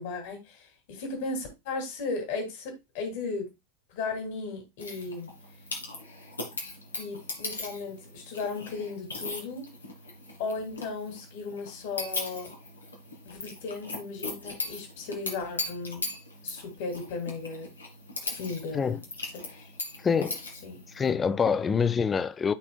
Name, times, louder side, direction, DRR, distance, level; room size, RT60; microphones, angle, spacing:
voice 1, 0.0-3.4 3.9-5.3 7.0-9.6 10.4-12.5 13.2-16.0 16.4-17.7 18.2-19.0 19.3-19.7 20.6-20.8, left 4 dB, 50° left, 2.6 m, -36 dB
sound 1, 4.8-21.1, left 2 dB, 75° left, 2.0 m, -39 dB
voice 2, 20.0-20.4 20.9-22.5, left 6 dB, 20° left, 0.4 m, -25 dB
13.0 x 4.3 x 2.3 m
figure-of-eight pair, 90°, 0 cm